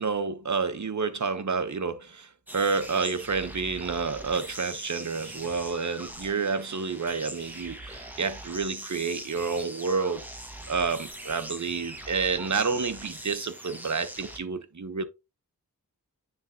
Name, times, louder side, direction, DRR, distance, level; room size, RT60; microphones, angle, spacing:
voice 1, 0.0-10.2 10.7-15.0, right 5 dB, 50° right, 1.0 m, -29 dB
sound 1, 2.5-14.4, right 1 dB, 5° right, 1.5 m, -42 dB
9.5 x 3.5 x 2.8 m
cardioid pair, 50°, 36 cm